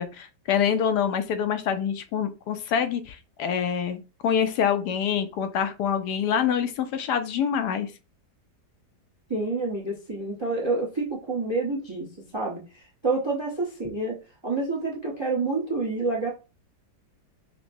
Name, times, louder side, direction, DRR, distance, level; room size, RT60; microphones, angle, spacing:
voice 1, 0.0-7.9, left 8 dB, 75° left, 1.1 m, -26 dB
voice 2, 9.3-12.1 12.3-12.6 13.0-14.1 14.4-16.3, right 3 dB, 25° right, 0.6 m, -28 dB
5.8 x 2.1 x 2.6 m
omnidirectional pair, 1.8 m